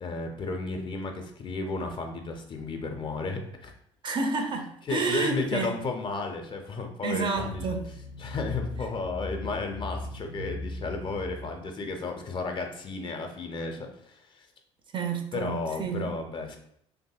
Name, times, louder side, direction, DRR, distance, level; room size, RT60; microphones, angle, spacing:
voice 1, 0.0-3.7 4.9-7.7 8.2-14.5 15.3-16.6, left 3 dB, 30° left, 4 dB, 0.4 m, -33 dB
voice 2, 4.0-5.7 7.0-7.8 14.9-16.1, right 4 dB, 30° right, 4 dB, 0.4 m, -30 dB
sound 1, 7.3-11.6, left 1 dB, 75° right, 0.6 m, -38 dB
2.6 x 2.5 x 2.3 m, 0.70 s
figure-of-eight pair, 55°, 15 cm